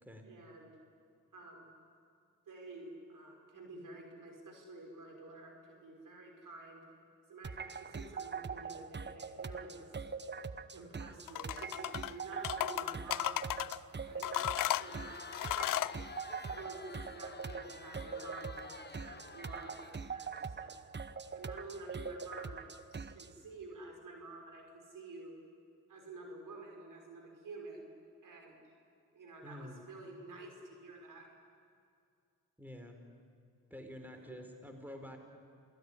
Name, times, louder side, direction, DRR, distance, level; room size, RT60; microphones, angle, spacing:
voice 1, 0.2-0.7 1.3-1.7 2.5-6.8 7.3-9.9 10.7-13.5 14.0-15.3 15.5-15.9 16.4-20.7 21.3-25.4 25.9-27.9 28.2-28.6 29.1-31.3 34.2-34.4, right 2 dB, 65° right, 2 dB, 5.6 m, -50 dB
sound 1, 7.4-23.3, right 5 dB, 30° right, 1.1 m, -43 dB
sound 2, 11.3-12.1 12.4-13.8 14.2-16.0, left 14 dB, 65° left, 0.6 m, -35 dB
Crowd, 14.4-20.4, left 4 dB, 30° left, 1.3 m, -50 dB
voice 2, 29.4-29.8 32.6-33.0 33.7-35.2, left 1 dB, 5° right, 4 dB, 4.4 m, -48 dB
28.5 x 17.0 x 10.0 m, 2.4 s
supercardioid pair, 50°, 34 cm